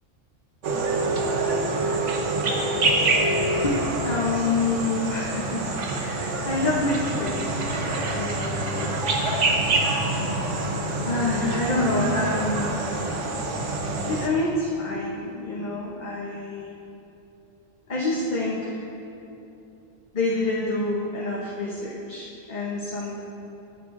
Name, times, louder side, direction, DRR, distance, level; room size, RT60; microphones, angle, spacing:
sound 1, 0.6-14.3, right 2 dB, 75° right, 1.2 m, -26 dB
voice 1, 4.0-13.0 14.1-16.7 17.9-18.8 20.1-23.2, left 2 dB, 40° left, -4 dB, 0.9 m, -28 dB
18.0 x 6.6 x 2.6 m, 2.9 s
omnidirectional pair, 1.3 m